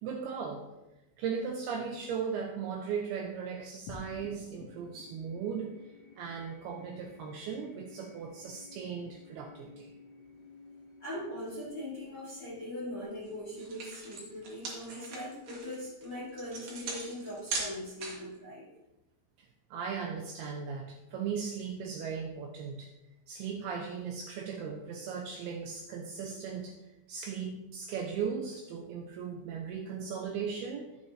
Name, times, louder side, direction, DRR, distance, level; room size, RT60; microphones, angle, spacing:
voice 1, 0.0-0.6 1.2-5.8 6.2-9.9 19.4-22.9 23.3-30.9, right 6 dB, 80° right, 2 dB, 2.3 m, -37 dB
sound 1, 3.9-14.5, left 3 dB, 80° left, 1.8 m, -54 dB
voice 2, 11.0-18.7, left 1 dB, 50° left, -8 dB, 1.6 m, -41 dB
sound 2, 13.2-13.3 13.6-18.4, right 3 dB, 55° right, 2.8 m, -39 dB
11.5 x 7.8 x 2.8 m, 0.98 s
omnidirectional pair, 5.1 m